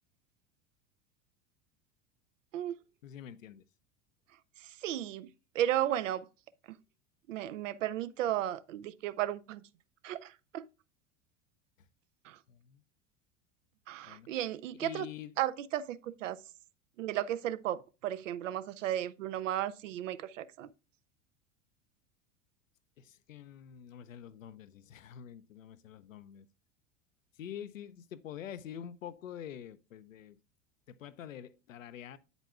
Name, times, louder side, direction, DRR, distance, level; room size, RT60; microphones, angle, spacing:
voice 1, 3.0-3.6 12.5-12.8 14.0-14.3 14.8-15.3 23.0-26.5 27.4-30.4 30.9-32.2, left 9 dB, 85° left, 0.6 m, -46 dB
voice 2, 4.6-5.3 5.5-6.3 7.3-9.6 10.0-10.7 12.2-12.4 13.9-15.1 15.4-16.4 17.0-20.7, right 12 dB, 75° right, 0.6 m, -34 dB
8.0 x 8.0 x 2.3 m
hypercardioid pair, 85°, 38 cm